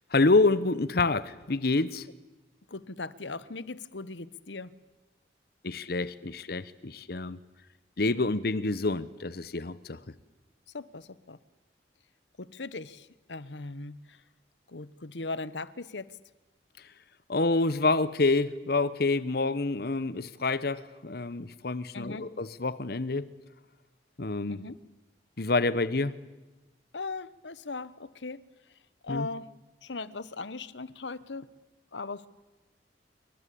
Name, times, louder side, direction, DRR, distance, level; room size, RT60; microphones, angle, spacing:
voice 1, 0.1-2.1 5.6-7.4 8.0-10.0 17.3-23.3 24.2-24.6 25.4-26.1 29.1-29.3, left 3 dB, 60° left, 17 dB, 1.0 m, -27 dB
voice 2, 2.7-4.7 10.7-11.4 12.4-14.2 14.7-16.2 21.9-22.3 24.5-24.8 26.9-29.5 29.8-31.5 31.9-32.3, left 3 dB, 85° left, 17 dB, 1.2 m, -39 dB
27.0 x 24.0 x 8.5 m, 1.1 s
head